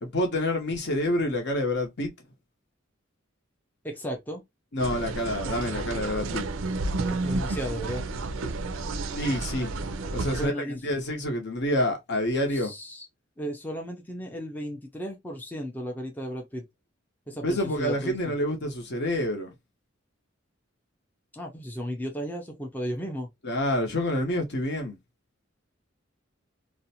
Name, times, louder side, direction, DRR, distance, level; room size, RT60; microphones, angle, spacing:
voice 1, 0.0-2.1 4.7-6.5 9.1-9.7 10.1-12.7 17.4-19.5 23.4-25.0, left 1 dB, 60° left, 0.8 m, -28 dB
voice 2, 3.8-4.4 7.1-8.0 10.3-10.8 12.5-13.0 13.4-16.6 17.3-18.3 21.3-23.3, equal, 10° left, 0.5 m, -35 dB
sound 1, 4.8-10.5, right 3 dB, 70° right, 0.4 m, -31 dB
2.5 x 2.1 x 2.7 m
head